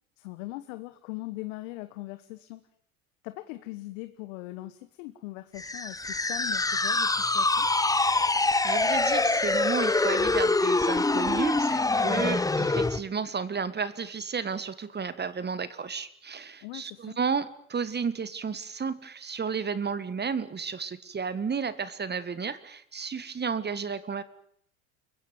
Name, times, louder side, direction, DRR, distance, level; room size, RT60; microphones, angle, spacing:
voice 1, 0.2-2.6 3.2-7.7 16.6-17.2, left 19 dB, 65° left, 11 dB, 1.5 m, -40 dB
sound 1, 5.6-13.0, left 3 dB, 10° left, 1.0 m, -25 dB
voice 2, 8.6-24.2, right 6 dB, 25° right, 15 dB, 1.7 m, -32 dB
29.5 x 16.0 x 9.3 m, 0.67 s
figure-of-eight pair, 70°, 42 cm